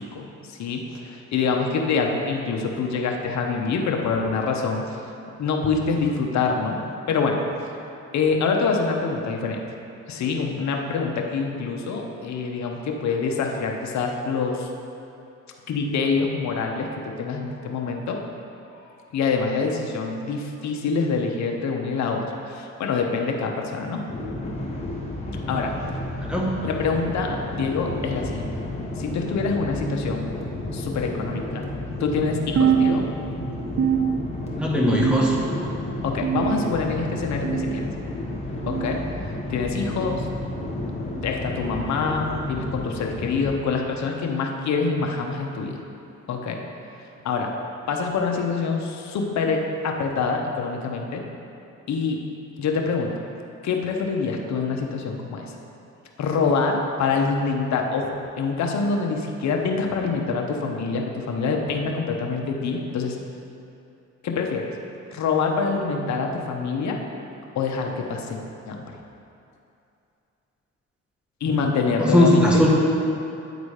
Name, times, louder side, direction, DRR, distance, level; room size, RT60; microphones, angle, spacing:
voice 1, 0.0-5.0 5.4-6.8 7.1-7.4 8.1-9.6 10.1-14.7 15.7-18.2 19.1-24.0 24.4-24.6 25.5-25.7 26.6-28.5 29.0-30.3 30.7-31.6 32.0-33.1 36.0-37.8 38.7-39.0 39.5-40.3 41.2-45.8 46.3-46.6 47.2-47.5 47.9-51.2 51.9-52.2 52.6-53.1 53.6-55.5 56.2-63.2 64.2-64.7 65.1-67.0 67.5-68.9 71.4-72.7, left 4 dB, 65° left, 2 dB, 0.9 m, -25 dB
sound 1, 24.1-43.5, left 2 dB, 20° left, 1.2 m, -31 dB
voice 2, 26.3-26.6 34.6-35.4 72.0-72.7, left 1 dB, 5° right, -3 dB, 1.4 m, -19 dB
sound 2, 32.6-33.4 33.8-34.6 35.0-35.6 36.2-36.8 37.4-37.8 38.7-38.9 39.9-40.1 41.1-41.3 42.3-42.5 43.5-43.7 44.8-44.9 46.0-46.1 47.2-47.3, right 8 dB, 50° right, 0.7 m, -24 dB
8.9 x 4.0 x 4.9 m, 2.7 s
cardioid pair, 90°, 30 cm